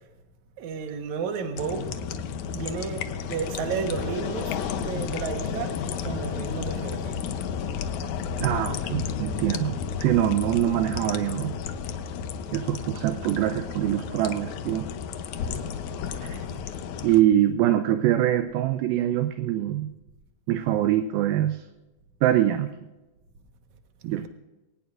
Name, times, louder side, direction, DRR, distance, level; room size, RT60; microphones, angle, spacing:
voice 1, 0.6-1.9 2.5-7.2 24.2-24.3, right 6 dB, 60° right, 5 dB, 2.3 m, -32 dB
sound 1, 1.6-17.2, left 7 dB, 80° left, 1.7 m, -32 dB
voice 2, 8.4-11.5 12.5-14.9 16.2-16.4 17.0-19.9 20.5-21.6 22.2-22.7 24.0-24.3, right 12 dB, 80° right, 9 dB, 2.3 m, -24 dB
23.0 x 18.5 x 2.5 m, 1.1 s
omnidirectional pair, 4.5 m